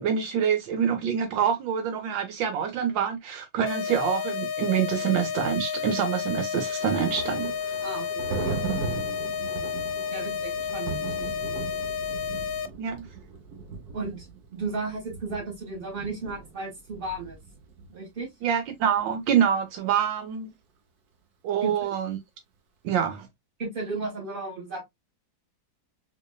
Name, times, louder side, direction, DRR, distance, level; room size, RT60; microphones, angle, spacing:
voice 1, 0.0-7.5 12.8-13.1 18.4-20.5 21.4-22.2 22.8-23.3, right 8 dB, 80° right, 1.3 m, -26 dB
sound 1, 3.7-12.7, left 7 dB, 85° left, 1.3 m, -31 dB
Thunder, 6.1-17.9, right 5 dB, 60° right, 1.2 m, -38 dB
voice 2, 7.8-8.6 8.8-9.0 9.4-9.7 10.1-11.3 13.9-17.4 17.9-18.3 21.6-21.7 23.6-24.9, right 3 dB, 30° right, 1.9 m, -35 dB
4.0 x 3.1 x 2.2 m
omnidirectional pair, 2.0 m